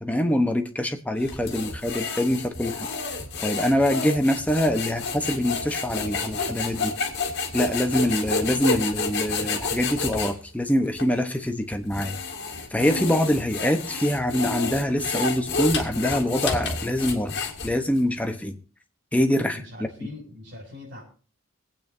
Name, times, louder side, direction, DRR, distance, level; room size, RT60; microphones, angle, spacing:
voice 1, 0.0-2.9 3.4-6.9 7.5-12.2 12.7-17.3 17.6-18.6 19.1-19.6, equal, 5° left, 6 dB, 0.9 m, -24 dB
sound 1, 1.2-10.3 11.0-11.1 11.7-18.0, left 4 dB, 55° left, 2.1 m, -30 dB
voice 2, 19.4-21.0, left 2 dB, 55° right, -5 dB, 7.2 m, -42 dB
24.5 x 8.8 x 2.7 m, 0.38 s
head